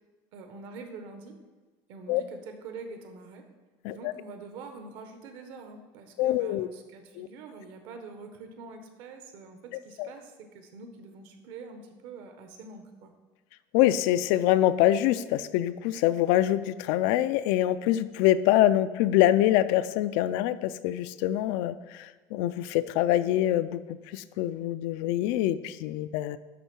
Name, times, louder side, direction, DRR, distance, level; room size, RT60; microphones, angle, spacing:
voice 1, 0.3-1.4 1.9-3.5 3.9-13.1, right 4 dB, 60° right, 6 dB, 1.2 m, -45 dB
voice 2, 6.2-6.7 7.2-7.3 10.0-10.1 13.7-23.8 24.1-26.4, left 13 dB, 75° left, 14 dB, 0.4 m, -25 dB
11.0 x 3.7 x 6.1 m, 1.3 s
cardioid pair, 170°, 9 cm